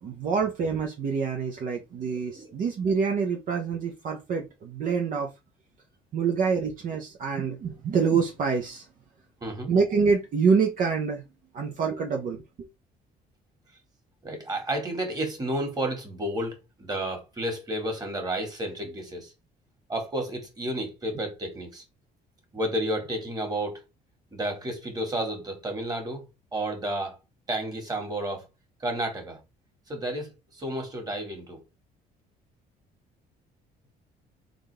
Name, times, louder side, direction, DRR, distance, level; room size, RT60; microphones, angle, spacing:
voice 1, 0.0-5.3 6.1-8.9 9.7-11.2 11.5-12.7, right 5 dB, 55° right, 0.9 m, -26 dB
voice 2, 14.2-19.3 19.9-21.8 22.5-23.8 24.3-26.2 26.5-27.2 27.5-28.4 28.8-29.4 29.9-31.6, right 1 dB, 25° right, 2.0 m, -31 dB
3.8 x 3.8 x 3.4 m
cardioid pair, 110°, 17 cm